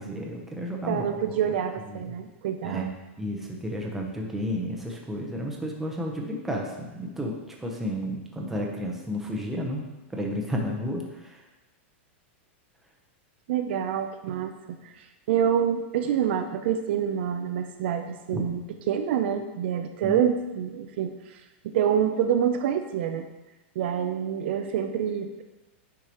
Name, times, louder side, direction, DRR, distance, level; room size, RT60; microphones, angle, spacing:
voice 1, 0.0-1.0 1.9-2.0 2.6-2.9 3.2-9.8 10.1-11.4 18.3-18.4 20.0-20.2, equal, 5° right, -1 dB, 0.9 m, -32 dB
voice 2, 0.9-2.9 13.5-18.6 18.9-21.4 21.6-23.3 23.8-25.4, right 8 dB, 60° right, 7 dB, 0.5 m, -27 dB
9.1 x 4.8 x 3.0 m, 1.1 s
supercardioid pair, 155°, 7 cm